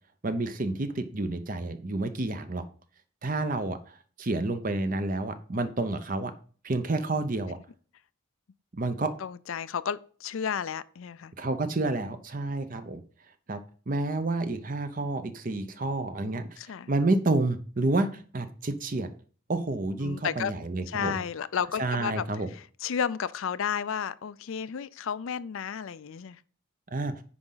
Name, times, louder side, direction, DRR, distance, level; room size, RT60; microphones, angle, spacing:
voice 1, 0.2-2.6 3.2-6.3 6.6-7.6 8.7-9.1 11.4-13.0 13.5-13.6 13.9-16.6 16.9-19.1 19.5-21.2 21.8-22.5 26.9-27.1, right 2 dB, 40° right, 0.7 m, -29 dB
voice 2, 9.2-11.3 16.6-16.9 20.0-20.5 20.9-22.2 22.5-26.4, left 7 dB, 70° left, 0.4 m, -32 dB
9.7 x 5.0 x 3.9 m
head